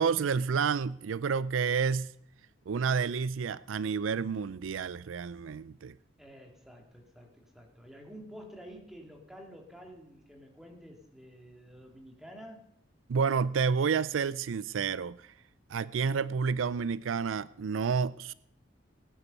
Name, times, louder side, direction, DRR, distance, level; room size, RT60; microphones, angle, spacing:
voice 1, 0.0-2.1 2.7-6.0 13.1-15.3 15.7-18.3, right 6 dB, 85° right, 0.4 m, -30 dB
voice 2, 6.2-12.7, equal, ahead, 2.5 m, -50 dB
19.0 x 10.0 x 5.4 m
head